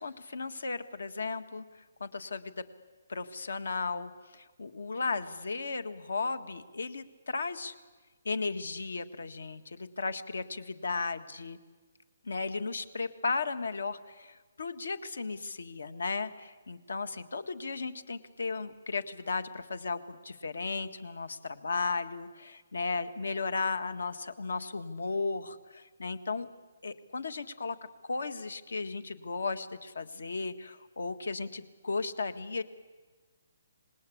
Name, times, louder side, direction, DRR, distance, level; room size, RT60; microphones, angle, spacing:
voice 1, 0.0-1.6 2.0-2.6 3.1-7.7 8.2-11.6 12.2-26.5 26.8-27.8 28.1-32.6, left 4 dB, 85° left, 12 dB, 1.6 m, -35 dB
26.5 x 19.5 x 8.6 m, 1.3 s
hypercardioid pair, 175°, 0 cm